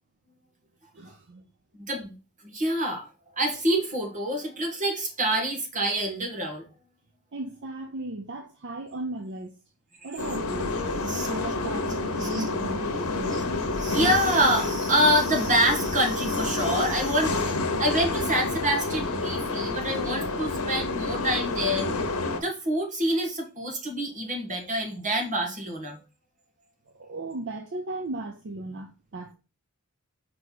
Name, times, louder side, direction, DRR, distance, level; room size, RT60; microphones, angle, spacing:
voice 1, 0.9-1.4 7.3-9.5 10.0-13.5 26.9-29.3, right 2 dB, 55° right, 0.6 m, -36 dB
voice 2, 2.4-3.1 3.4-6.7 10.0-10.1 11.0-11.3 12.2-12.4 13.3-13.4 13.8-17.4 17.8-21.9 22.4-26.0, equal, 35° right, 1.8 m, -26 dB
sound 1, 10.2-22.4, left 3 dB, 85° left, 1.1 m, -28 dB
5.1 x 4.7 x 4.0 m
head